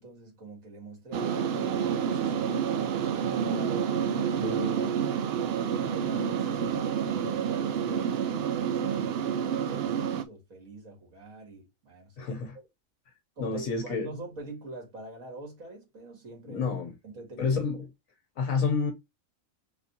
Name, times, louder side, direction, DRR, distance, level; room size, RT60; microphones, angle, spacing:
voice 1, 0.0-5.2 5.7-12.6 13.4-16.7 17.0-17.9, right 2 dB, 80° right, 2.4 m, -45 dB
sound 1, 1.1-10.2, right 8 dB, 60° right, 0.7 m, -29 dB
voice 2, 4.4-4.9 12.2-12.6 13.4-14.1 16.5-16.9 17.4-17.8 18.4-18.9, left 4 dB, 75° left, 1.3 m, -29 dB
4.2 x 3.4 x 2.7 m
omnidirectional pair, 1.4 m